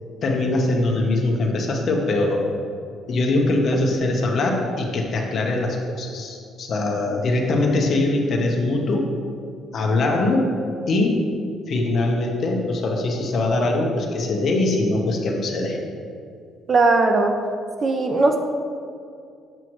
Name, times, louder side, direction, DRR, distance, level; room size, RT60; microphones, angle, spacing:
voice 1, 0.2-2.5 3.1-9.0 9.7-10.5 10.9-11.2 11.7-15.8, left 2 dB, 35° left, 1 dB, 0.8 m, -22 dB
voice 2, 16.7-17.3 17.8-18.4, right 3 dB, 25° right, 5 dB, 0.4 m, -18 dB
7.7 x 6.2 x 3.0 m, 2.4 s
cardioid pair, 175°, 0 cm